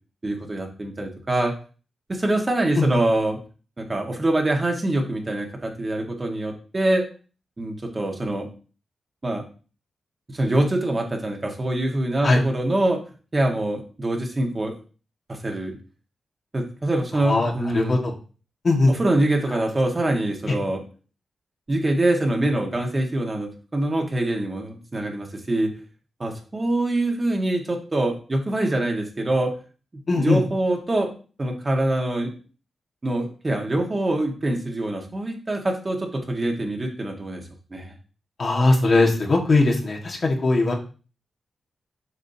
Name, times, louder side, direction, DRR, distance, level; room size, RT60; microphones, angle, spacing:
voice 1, 0.2-1.5 2.1-3.4 3.8-7.0 7.6-8.5 9.2-9.4 10.3-13.0 13.3-14.7 15.3-15.8 16.5-18.0 18.9-20.8 21.7-25.7 26.2-29.5 30.1-31.1 31.4-32.3 33.0-37.4 37.7-37.9, right 1 dB, 30° right, 1 dB, 1.7 m, -24 dB
voice 2, 17.1-18.1 18.6-18.9 19.5-19.6 20.5-20.6 30.1-30.4 38.4-40.7, left 2 dB, 55° left, 0 dB, 1.8 m, -20 dB
7.5 x 5.0 x 2.8 m, 0.37 s
cardioid pair, 65°, 0 cm